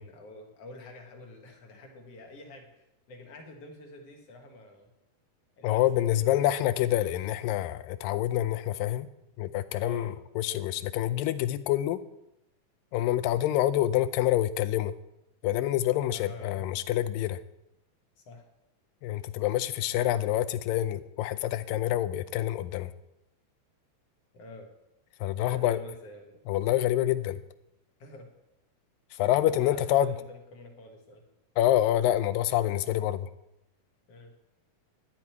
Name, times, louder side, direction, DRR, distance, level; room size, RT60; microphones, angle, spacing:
voice 1, 0.0-4.9 5.6-6.4 9.8-10.1 16.1-16.7 18.2-18.4 24.3-24.7 25.4-26.4 28.0-28.3 29.4-31.2 34.1-34.3, left 2 dB, 50° left, 3 dB, 2.3 m, -47 dB
voice 2, 5.6-9.1 9.4-12.0 12.9-14.9 15.4-17.4 19.0-22.9 25.2-25.8 26.5-27.4 29.2-30.1 31.6-33.3, left 13 dB, 80° left, 14 dB, 2.2 m, -27 dB
12.0 x 11.0 x 4.5 m, 0.87 s
omnidirectional pair, 4.2 m